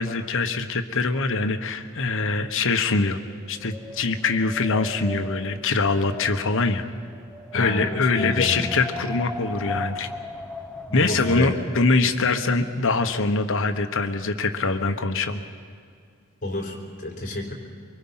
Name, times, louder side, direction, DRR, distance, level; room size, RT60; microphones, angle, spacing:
voice 1, 0.0-3.2 3.5-6.8 7.5-10.1 10.9-15.4, left 3 dB, 60° left, 8 dB, 1.2 m, -23 dB
Wind, 3.2-12.1, left 2 dB, 5° left, 1.1 m, -38 dB
voice 2, 7.5-8.8 10.9-11.5 16.4-17.5, left 1 dB, 35° left, 1 dB, 3.8 m, -29 dB
24.5 x 24.0 x 5.7 m, 2.2 s
head